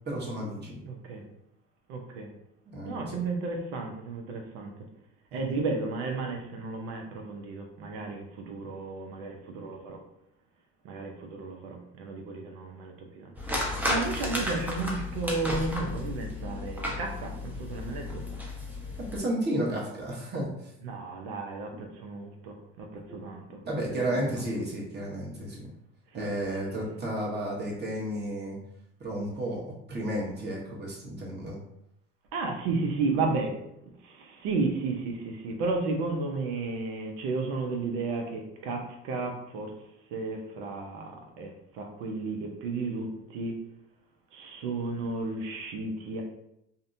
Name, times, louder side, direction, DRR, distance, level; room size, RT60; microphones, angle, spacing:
voice 1, 0.1-0.8 2.7-3.2 5.3-5.6 19.0-20.7 23.1-23.2 23.6-25.7 26.1-28.6 29.0-31.6, right 1 dB, 35° right, -3 dB, 1.1 m, -32 dB
voice 2, 0.8-1.2 1.9-2.3 2.8-4.7 5.3-10.0 10.8-18.2 20.8-23.6 23.9-24.3 26.2-27.0 32.3-33.5 34.0-39.7 40.1-41.1 41.4-41.5 41.7-43.1 43.3-43.5 44.3-46.2, right 3 dB, 80° right, 2 dB, 0.6 m, -33 dB
sound 1, 13.3-19.2, left 1 dB, 5° right, 0.6 m, -33 dB
2.6 x 2.1 x 2.6 m, 0.79 s
supercardioid pair, 75°, 30 cm